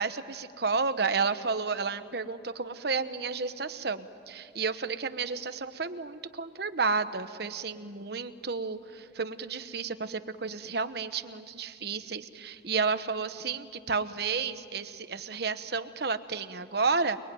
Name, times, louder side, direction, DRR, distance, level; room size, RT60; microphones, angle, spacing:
voice 1, 0.0-17.2, right 4 dB, 55° right, 10 dB, 1.1 m, -31 dB
29.5 x 22.0 x 9.3 m, 2.3 s
head